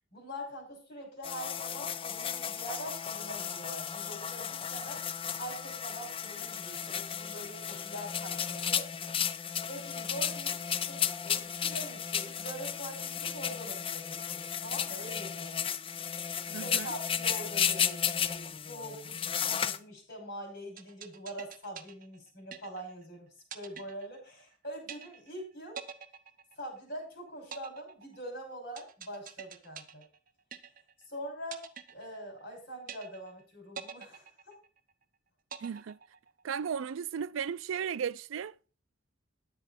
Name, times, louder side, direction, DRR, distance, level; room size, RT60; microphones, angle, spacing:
voice 1, 0.1-5.0 5.4-8.9 9.7-15.5 16.5-23.3 23.5-25.8 26.6-30.0 31.1-34.3, equal, 55° left, 5.9 m, -44 dB
sound 1, 1.2-19.8, left 8 dB, 30° left, 0.5 m, -34 dB
voice 2, 16.5-16.9 35.6-36.0 36.4-38.5, right 7 dB, 85° right, 0.4 m, -35 dB
sound 2, 20.8-23.1 23.5-24.5 24.9-25.4 25.8-27.0 27.5-31.1 31.5-32.5 32.9-33.4 33.8-35.0 35.5-36.5, right 7 dB, 45° right, 0.8 m, -46 dB
10.5 x 8.9 x 4.3 m
head